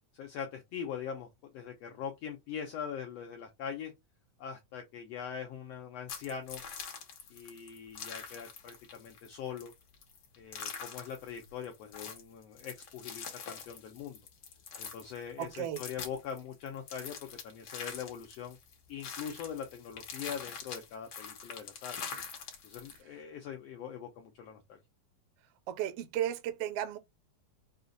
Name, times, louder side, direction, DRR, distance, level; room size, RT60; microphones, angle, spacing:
voice 1, 0.1-1.3 1.5-3.9 4.4-6.6 7.3-9.7 10.4-14.2 14.8-18.6 18.9-22.0 22.6-24.8, left 8 dB, 75° left, 1.5 m, -42 dB
sound 1, 6.1-23.0, left 6 dB, 55° left, 1.4 m, -44 dB
voice 2, 15.4-15.8 25.7-27.0, right 11 dB, 75° right, 1.4 m, -34 dB
5.6 x 2.4 x 3.9 m
omnidirectional pair, 3.6 m